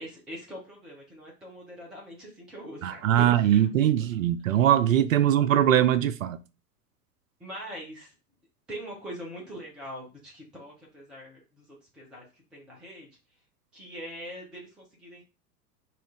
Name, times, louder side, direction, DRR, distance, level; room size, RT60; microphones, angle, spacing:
voice 1, 0.0-3.9 7.4-8.1 8.7-11.6 11.9-13.1 13.7-15.2, equal, ahead, 0.4 m, -42 dB
voice 2, 2.8-6.4, right 11 dB, 55° right, 0.5 m, -22 dB
5.8 x 2.4 x 3.5 m
figure-of-eight pair, 95°, 50 cm